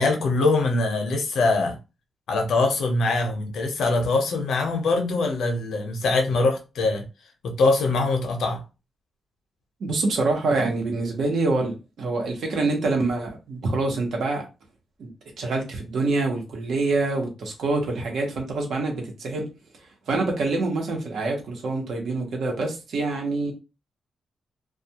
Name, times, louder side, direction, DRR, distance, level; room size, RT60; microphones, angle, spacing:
voice 1, 0.0-1.8 2.3-7.0 7.4-8.6, left 3 dB, 80° left, 0.7 m, -23 dB
voice 2, 9.8-14.4 15.0-15.1 15.4-19.5 20.1-23.5, right 3 dB, 65° right, 0.9 m, -26 dB
2.3 x 2.3 x 2.8 m
wide cardioid pair, 170°, 0 cm